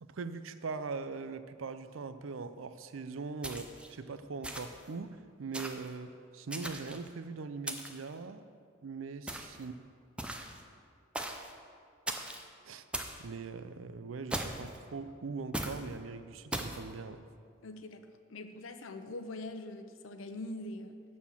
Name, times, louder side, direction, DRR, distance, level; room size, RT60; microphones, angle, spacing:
voice 1, 0.0-3.6 3.9-8.4 8.8-9.7 12.6-12.8 13.2-17.2, right 4 dB, 90° right, 11 dB, 0.5 m, -41 dB
Footsteps Mountain Boots Mud Mono, 3.4-3.9 4.4-4.9 5.5-5.9 6.5-7.1 7.7-8.1 9.3-9.6 10.2-10.6 11.1-11.5 12.1-12.4 12.9-13.2 14.3-14.8 15.5-15.8 16.5-16.8, right 1 dB, 5° right, 0.5 m, -38 dB
voice 2, 17.6-21.0, left 2 dB, 90° left, 8 dB, 0.7 m, -43 dB
11.5 x 4.4 x 7.3 m, 2.2 s
head